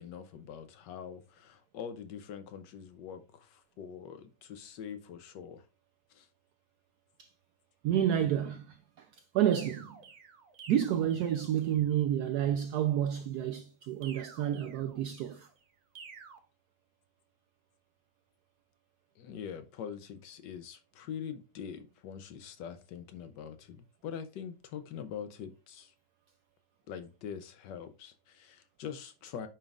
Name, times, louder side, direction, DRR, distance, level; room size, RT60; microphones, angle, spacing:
voice 1, 0.0-5.6 6.1-6.3 19.2-25.9 26.9-29.5, left 8 dB, 70° left, 1.2 m, -44 dB
voice 2, 7.8-9.1 9.3-10.0 10.7-15.5, right 10 dB, 80° right, 0.9 m, -30 dB
sound 1, 9.5-11.9 14.0-15.4 15.9-16.4, right 5 dB, 55° right, 1.3 m, -51 dB
8.9 x 5.5 x 2.4 m
omnidirectional pair, 2.2 m